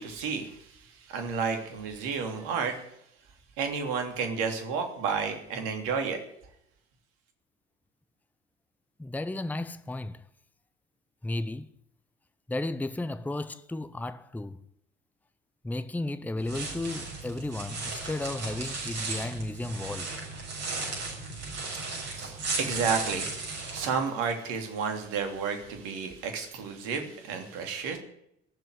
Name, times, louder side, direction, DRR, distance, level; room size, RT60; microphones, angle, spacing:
voice 1, 0.0-2.8 3.6-6.2 21.7-28.0, right 5 dB, 60° right, 3.2 m, -32 dB
voice 2, 9.0-10.2 11.2-11.7 12.5-14.6 15.6-20.1, left 2 dB, 5° left, 0.9 m, -34 dB
sound 1, 16.4-23.9, right 3 dB, 45° right, 7.0 m, -35 dB
18.5 x 7.7 x 9.6 m
figure-of-eight pair, 60°, 36 cm